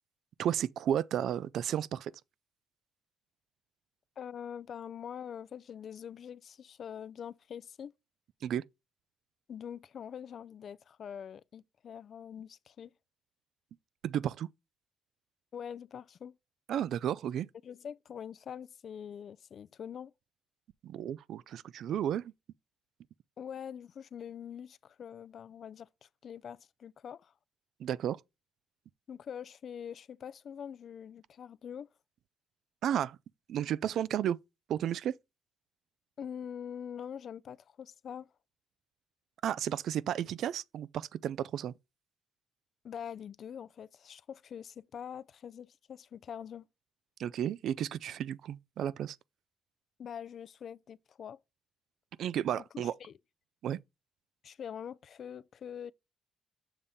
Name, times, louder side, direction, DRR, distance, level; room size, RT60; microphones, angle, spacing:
voice 1, 0.4-2.1 8.4-8.6 14.0-14.5 16.7-17.5 20.8-22.3 27.8-28.2 32.8-33.2 33.5-34.4 34.7-35.1 39.4-41.7 47.2-49.2 52.2-53.0 53.6-53.8, right 10 dB, 75° right, 0.3 m, -33 dB
voice 2, 4.2-7.9 9.5-12.9 15.5-16.4 17.6-20.1 23.4-27.3 29.1-31.9 36.2-38.3 42.8-46.7 50.0-51.4 52.5-53.2 54.4-55.9, left 8 dB, 55° left, 0.3 m, -44 dB
7.0 x 3.6 x 4.1 m
cardioid pair, 90°, 0 cm